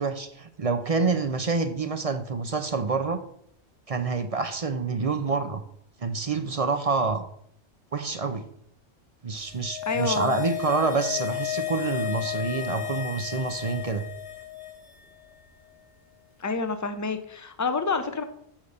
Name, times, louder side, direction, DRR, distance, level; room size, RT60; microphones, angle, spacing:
voice 1, 0.0-3.2 3.9-5.6 6.0-7.2 7.9-8.4 9.2-14.1, right 4 dB, 40° right, 9 dB, 0.6 m, -27 dB
sound 1, 9.4-14.9 15.2-15.3, left 13 dB, 70° left, 3.1 m, -33 dB
voice 2, 9.9-10.4 16.4-18.2, left 4 dB, 20° left, 9 dB, 0.7 m, -28 dB
7.3 x 5.5 x 6.5 m, 0.69 s
omnidirectional pair, 1.1 m